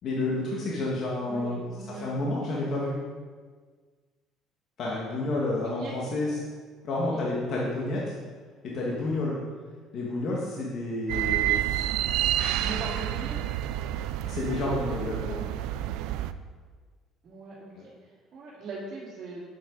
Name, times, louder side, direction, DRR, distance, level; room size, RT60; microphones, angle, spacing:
voice 1, 0.0-1.6 1.9-3.0 4.8-6.4 6.8-8.2 8.6-9.4 9.9-11.8 12.6-12.8 14.3-15.4 17.7-17.8, left 2 dB, 60° left, -4 dB, 1.9 m, -30 dB
voice 2, 1.2-2.2 5.6-5.9 6.9-7.2 12.5-13.4 14.8-15.3 17.2-19.4, right 3 dB, 50° right, -9 dB, 2.6 m, -40 dB
sound 1, 11.1-16.3, right 13 dB, 80° right, 0.4 m, -29 dB
8.6 x 7.7 x 4.1 m, 1.5 s
supercardioid pair, 85°, 0 cm